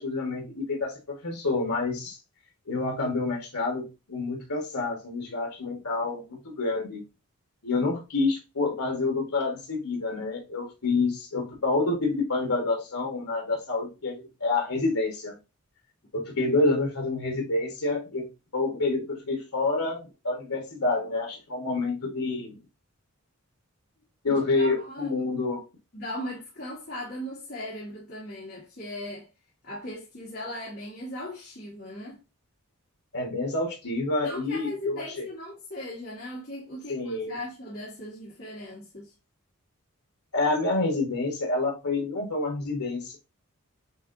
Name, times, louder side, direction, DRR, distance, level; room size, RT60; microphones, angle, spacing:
voice 1, 0.0-2.2 2.7-7.0 7.6-15.3 16.1-22.6 24.2-25.6 33.1-35.2 36.9-37.3 40.3-43.2, left 3 dB, 75° left, 1.4 m, -28 dB
voice 2, 24.3-25.2 25.9-29.3 29.6-32.2 34.2-39.1, left 1 dB, 45° left, 1.8 m, -38 dB
7.0 x 2.6 x 2.6 m
head